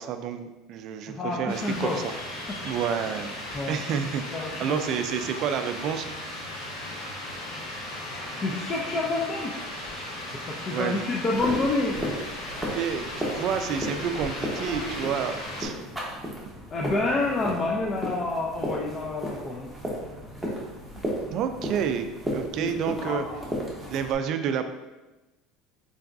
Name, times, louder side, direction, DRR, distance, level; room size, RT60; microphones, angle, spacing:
voice 1, 0.0-2.0 2.6-3.3 3.7-6.1 10.7-11.1 12.7-15.7 21.3-23.2 23.9-24.7, right 7 dB, 55° right, 8 dB, 0.3 m, -29 dB
voice 2, 1.1-2.0 2.5-2.6 3.5-3.8 4.3-5.0 8.4-9.6 10.3-12.2 16.7-19.7 22.6-24.0, left 2 dB, 30° left, -2 dB, 0.4 m, -29 dB
sound 1, 1.5-15.7, left 1 dB, 85° left, 1.2 m, -36 dB
sound 2, 11.3-24.1, equal, 5° right, 0.9 m, -35 dB
3.9 x 3.4 x 2.5 m, 1.1 s
supercardioid pair, 125°, 0 cm